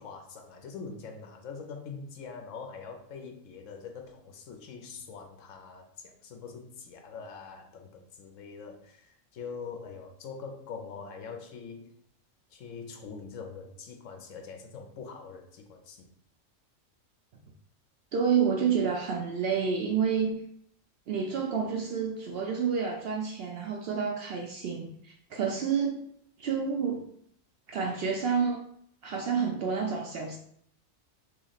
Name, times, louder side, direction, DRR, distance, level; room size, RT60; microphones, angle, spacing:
voice 1, 0.0-11.9 12.5-16.1, left 5 dB, 75° left, 4 dB, 1.0 m, -43 dB
voice 2, 18.1-20.4 21.1-26.1 26.4-27.1 27.7-28.6 29.0-30.4, right 6 dB, 65° right, 1 dB, 0.6 m, -29 dB
3.0 x 2.9 x 4.0 m, 0.65 s
omnidirectional pair, 1.4 m